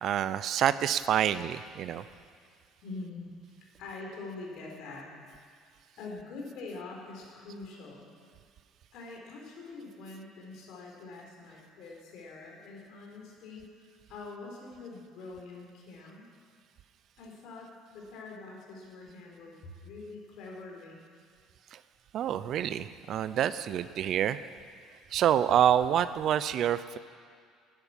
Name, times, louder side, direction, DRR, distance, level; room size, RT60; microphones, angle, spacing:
voice 1, 0.0-2.0 21.7-21.8 22.1-24.5 25.1-27.0, right 10 dB, 55° right, 14 dB, 0.5 m, -27 dB
voice 2, 2.8-5.1 6.0-8.1 8.9-16.2 17.2-21.0, left 3 dB, 65° left, -1 dB, 4.1 m, -45 dB
12.0 x 11.0 x 9.8 m, 2.1 s
cardioid pair, 120°, 0 cm